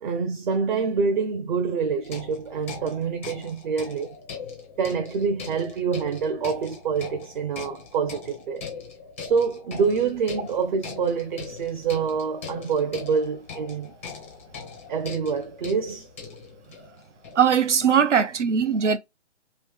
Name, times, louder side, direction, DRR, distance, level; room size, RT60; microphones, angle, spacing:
voice 1, 0.0-4.2 4.8-8.6 9.2-13.9 14.9-16.1 17.8-17.9 18.8-18.9, right 5 dB, 45° right, 0.5 m, -26 dB
sound 1, 2.0-17.6, left 5 dB, 10° left, 0.4 m, -41 dB
voice 2, 17.4-19.0, right 7 dB, 85° right, 0.7 m, -20 dB
3.0 x 2.7 x 3.3 m
hypercardioid pair, 150°, 35 cm